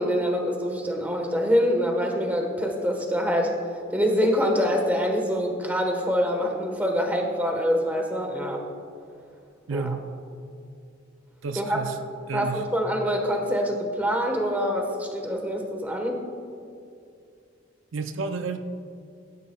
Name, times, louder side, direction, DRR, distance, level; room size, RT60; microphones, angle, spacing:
voice 1, 0.0-3.5 3.9-8.6 9.7-9.9 11.5-11.8 12.3-16.2, equal, 10° right, 2 dB, 1.3 m, -25 dB
voice 2, 9.7-10.1 11.4-12.0 12.3-12.6 17.9-18.6, right 4 dB, 75° right, 7 dB, 0.5 m, -30 dB
16.5 x 12.0 x 2.3 m, 2.4 s
head